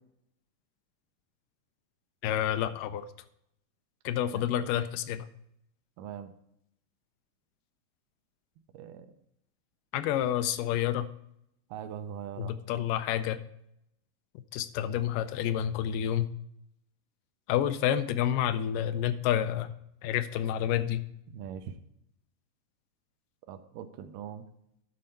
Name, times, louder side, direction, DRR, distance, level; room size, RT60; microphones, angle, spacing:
voice 1, 2.2-3.1 4.1-5.3 9.9-11.1 12.4-13.4 14.5-16.3 17.5-19.7 20.0-21.0, left 10 dB, 80° left, 12 dB, 2.1 m, -29 dB
voice 2, 6.0-6.3 8.7-9.1 11.7-12.6 21.3-21.7 23.5-24.4, right 9 dB, 80° right, 9 dB, 2.2 m, -41 dB
11.0 x 4.3 x 5.2 m, 0.77 s
omnidirectional pair, 3.9 m